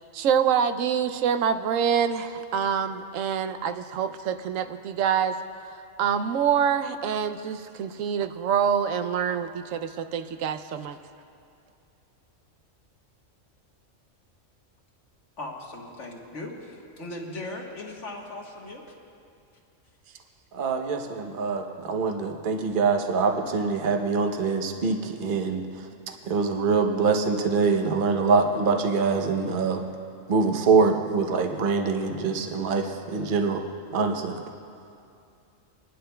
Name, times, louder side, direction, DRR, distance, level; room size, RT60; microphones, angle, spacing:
voice 1, 0.1-5.4 6.0-11.0, right 8 dB, 85° right, 10 dB, 1.0 m, -26 dB
voice 2, 15.4-18.8, left 2 dB, 70° left, -1 dB, 1.7 m, -38 dB
voice 3, 20.5-25.9 26.2-29.8 30.3-33.6 33.9-34.4, right 4 dB, 45° right, 3 dB, 0.9 m, -24 dB
30.0 x 11.5 x 2.2 m, 2.5 s
omnidirectional pair, 1.3 m